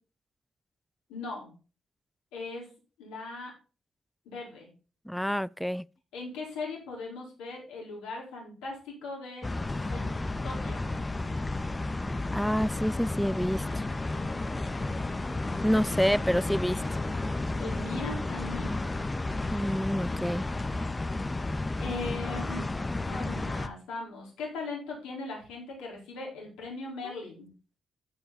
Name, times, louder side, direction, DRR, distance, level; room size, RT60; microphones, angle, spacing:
voice 1, 1.1-1.6 2.3-2.7 3.0-3.5 4.3-4.7 6.1-9.5 9.9-10.1 10.4-10.9 17.6-18.8 21.8-22.6 23.1-27.5, left 3 dB, 80° left, 4.5 m, -39 dB
voice 2, 5.1-5.8 12.3-13.8 15.6-16.8 19.5-20.5, equal, 5° left, 0.4 m, -28 dB
sound 1, 9.4-23.7, left 2 dB, 25° left, 1.3 m, -32 dB
14.0 x 5.4 x 4.1 m
hypercardioid pair, 40°, 0 cm